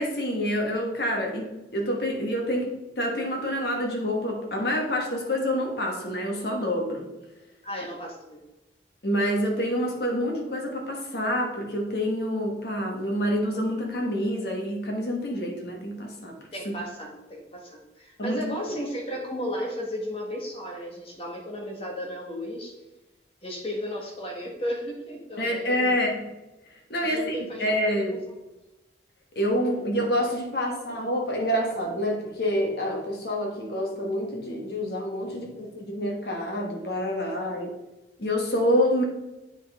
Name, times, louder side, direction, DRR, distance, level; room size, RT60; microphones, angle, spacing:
voice 1, 0.0-2.7 3.0-7.1 9.0-16.4 18.2-18.4 25.4-26.3 26.9-28.2 29.3-37.7 38.2-39.0, equal, 60° left, 1 dB, 1.4 m, -27 dB
voice 2, 7.6-8.4 16.5-22.7 23.4-26.0 27.0-27.6 28.0-28.2, equal, 30° left, -1 dB, 1.5 m, -34 dB
8.2 x 5.4 x 3.6 m, 1.0 s
head